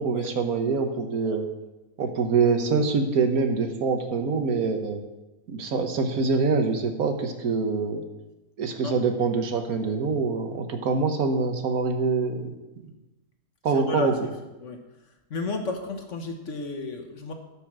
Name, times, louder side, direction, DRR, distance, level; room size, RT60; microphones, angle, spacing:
voice 1, 0.0-1.5 2.0-5.0 5.5-8.0 8.6-12.4 13.6-14.1, right 4 dB, 80° right, 6 dB, 1.6 m, -25 dB
voice 2, 13.7-14.1 14.6-14.8 15.3-17.3, left 3 dB, 55° left, 5 dB, 1.5 m, -32 dB
13.0 x 5.4 x 6.1 m, 1.0 s
omnidirectional pair, 1.5 m